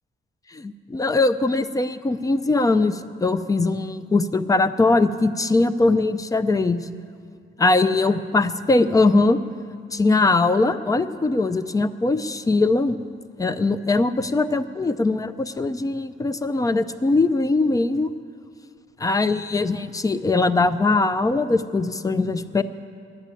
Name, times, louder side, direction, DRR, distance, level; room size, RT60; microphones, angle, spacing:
voice 1, 0.5-6.8 7.6-9.4 9.9-13.0 13.4-18.1 19.0-22.6, left 3 dB, 15° left, 12 dB, 0.4 m, -21 dB
11.0 x 9.2 x 9.6 m, 2.4 s
wide cardioid pair, 165°, 21 cm